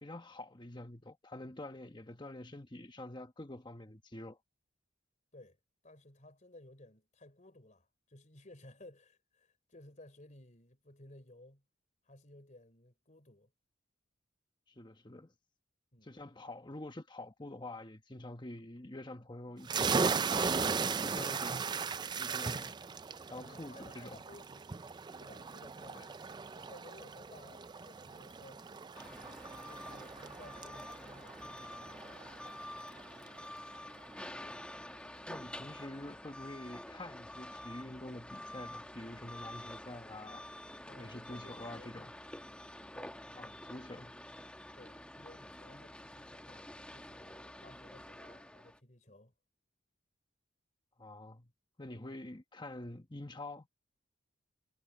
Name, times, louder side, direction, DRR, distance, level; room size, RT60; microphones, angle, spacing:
voice 1, 0.0-4.4 14.7-15.3 16.0-19.9 20.3-21.7 22.2-22.8 23.3-24.2 25.9-26.1 34.4-34.6 35.3-40.5 40.9-42.1 43.4-44.2 51.0-51.5 51.8-53.7, left 1 dB, 25° left, 1.3 m, -47 dB
voice 2, 5.8-11.6 12.0-13.5 15.9-16.2 23.3-24.8 25.2-28.7 29.6-32.3 40.8-42.0 42.9-43.5 44.8-49.3, left 1 dB, 40° left, 3.4 m, -57 dB
sound 1, 19.6-33.0, right 5 dB, 20° right, 0.3 m, -37 dB
sound 2, 28.9-48.8, left 1 dB, 5° left, 1.2 m, -48 dB
head